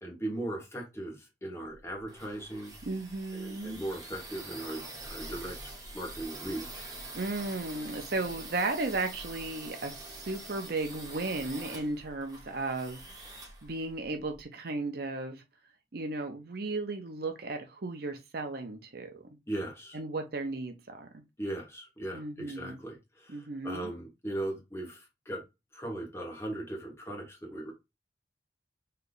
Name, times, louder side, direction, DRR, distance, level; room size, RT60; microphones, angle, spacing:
voice 1, 0.0-2.7 3.3-6.9 19.5-20.0 21.4-25.4 25.7-27.7, right 1 dB, 15° left, 1.2 m, -38 dB
sound 1, 1.7-14.4, right 2 dB, 20° right, 1.1 m, -45 dB
voice 2, 2.8-3.8 7.1-15.4 15.9-19.2 19.9-21.1 22.1-22.8 23.3-23.9, right 2 dB, 55° right, 0.7 m, -35 dB
3.3 x 2.8 x 3.9 m
head